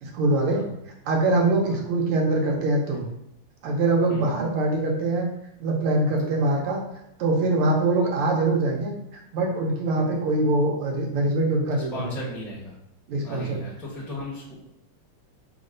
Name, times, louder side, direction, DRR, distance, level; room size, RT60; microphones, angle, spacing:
voice 1, 0.0-0.6 1.0-3.0 3.6-5.3 5.6-6.8 7.2-8.9 9.3-12.0 13.1-13.6, right 2 dB, 90° right, 0 dB, 1.7 m, -23 dB
voice 2, 11.9-12.8 13.2-14.5, left 1 dB, ahead, -7 dB, 0.5 m, -36 dB
3.8 x 2.1 x 3.7 m, 0.78 s
omnidirectional pair, 2.3 m